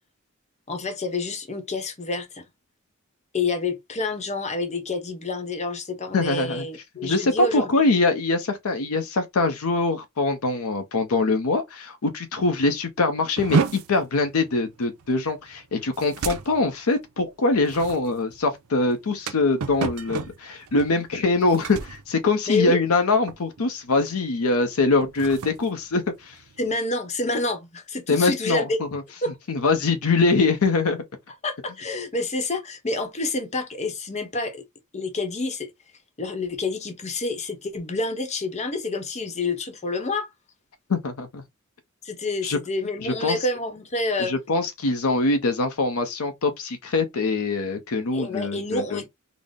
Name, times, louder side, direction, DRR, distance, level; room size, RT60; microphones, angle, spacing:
voice 1, 0.7-2.4 3.3-7.7 22.5-22.8 26.6-28.8 29.2-29.3 31.4-34.6 34.9-35.7 36.2-40.3 42.0-44.3 48.1-49.1, left 2 dB, 30° left, 0.8 m, -28 dB
voice 2, 6.1-6.7 7.0-26.4 28.1-29.0 29.5-31.0 40.9-41.4 42.4-42.6 43.0-43.4 44.2-49.0, left 3 dB, 75° left, 0.6 m, -23 dB
sound 1, 13.4-23.0 23.3-23.7 24.0-24.3 24.9-26.8, right 5 dB, 90° right, 0.5 m, -32 dB
3.9 x 2.0 x 3.4 m
head